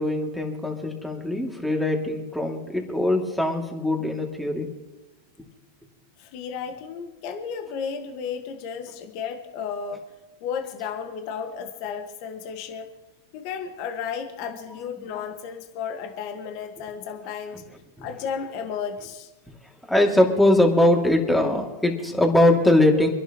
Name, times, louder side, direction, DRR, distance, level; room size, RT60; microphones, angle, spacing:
voice 1, 0.0-4.7 18.0-18.1 19.9-23.1, left 1 dB, 5° left, 2 dB, 2.6 m, -21 dB
voice 2, 6.2-10.1 10.4-12.9 13.3-17.6 18.0-19.3, left 7 dB, 55° left, 5 dB, 1.6 m, -33 dB
27.5 x 11.0 x 3.1 m, 1.1 s
hypercardioid pair, 110°, 0 cm